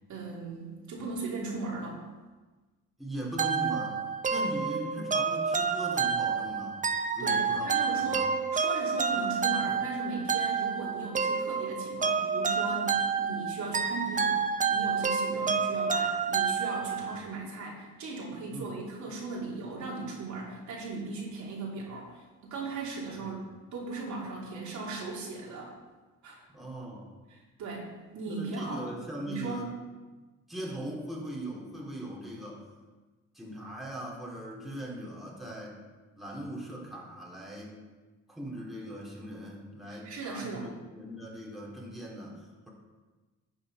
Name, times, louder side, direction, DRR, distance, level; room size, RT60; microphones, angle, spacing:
voice 1, 0.1-2.0 7.2-14.4 14.7-23.4 23.7-25.7 26.2-26.4 27.3-28.9 29.3-29.7 39.9-40.7, right 3 dB, 70° right, -4 dB, 3.0 m, -38 dB
voice 2, 3.0-4.0 4.3-6.8 7.1-8.3 17.0-17.1 18.5-18.7 23.1-23.2 26.5-27.0 28.3-29.7 30.5-32.6 33.3-35.8 36.2-37.7 38.3-42.7, right 1 dB, ahead, -4 dB, 2.9 m, -40 dB
sound 1, 3.4-17.2, right 5 dB, 25° right, 0.6 m, -29 dB
11.5 x 6.8 x 4.7 m, 1.3 s
cardioid pair, 90°, 30 cm